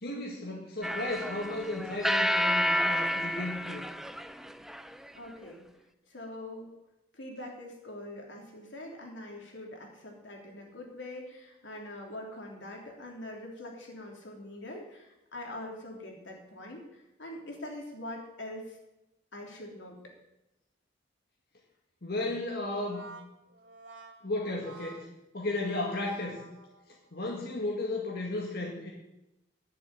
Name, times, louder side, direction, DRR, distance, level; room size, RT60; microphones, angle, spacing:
voice 1, 0.0-3.8 22.0-23.1 24.2-25.1 25.3-26.4 27.1-28.9, left 2 dB, 60° left, -2 dB, 2.0 m, -34 dB
sound 1, 0.8-5.1, equal, ahead, 0.4 m, -30 dB
voice 2, 5.1-5.6 6.1-6.7 7.1-18.8 19.3-20.0, left 1 dB, 80° left, 0 dB, 3.2 m, -43 dB
Brass instrument, 22.6-27.1, right 2 dB, 90° right, 1.4 m, -51 dB
10.5 x 7.3 x 9.4 m, 0.92 s
head